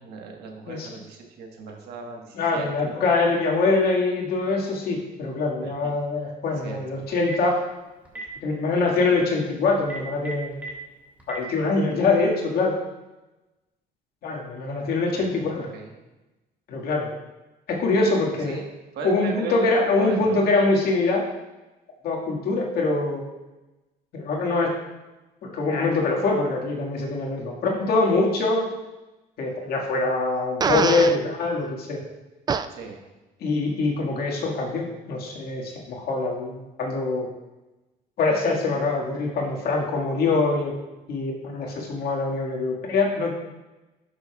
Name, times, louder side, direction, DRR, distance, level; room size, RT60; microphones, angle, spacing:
voice 1, 0.0-3.0 5.6-6.3 6.6-7.0 15.1-15.4 15.7-15.9 18.5-18.6 18.9-20.4 32.7-33.0, right 4 dB, 75° right, 2 dB, 1.4 m, -38 dB
voice 2, 2.3-7.6 8.4-10.6 11.3-12.7 14.2-15.7 16.7-17.1 17.7-18.6 19.0-21.3 22.0-23.2 24.1-24.8 25.4-28.7 29.4-32.0 33.4-37.3 38.2-40.8 41.1-43.4, left 3 dB, 70° left, -1 dB, 1.8 m, -24 dB
Telephone, 7.0-7.5 8.0-8.3 8.9-9.1 9.8-10.7 11.2-11.4, right 3 dB, 10° right, 2.1 m, -35 dB
Fart, 30.6-31.2 32.5-32.7, right 6 dB, 25° right, 0.3 m, -23 dB
12.0 x 6.5 x 2.3 m, 1.1 s
cardioid pair, 110°, 17 cm